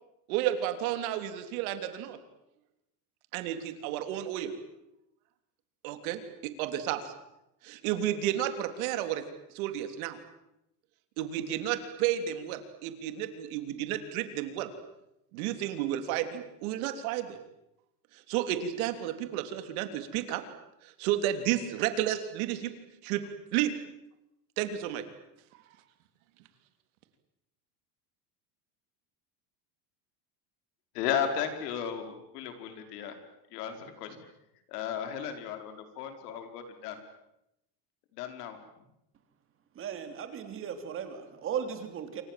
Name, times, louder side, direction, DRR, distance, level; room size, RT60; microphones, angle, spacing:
voice 1, 0.3-2.2 3.3-4.5 5.8-7.1 7.6-9.2 9.5-10.2 11.2-14.7 15.3-17.4 18.3-20.4 20.8-22.7 23.0-23.2 23.5-23.7 24.6-25.0, right 11 dB, 65° right, 9 dB, 3.4 m, -32 dB
voice 2, 30.9-33.2 33.5-34.2 34.7-37.0 38.1-38.6, left 8 dB, 80° left, 7 dB, 4.9 m, -34 dB
voice 3, 39.8-42.2, right 8 dB, 25° right, 8 dB, 3.3 m, -36 dB
28.0 x 25.5 x 7.7 m, 0.86 s
cardioid pair, 170°, 46 cm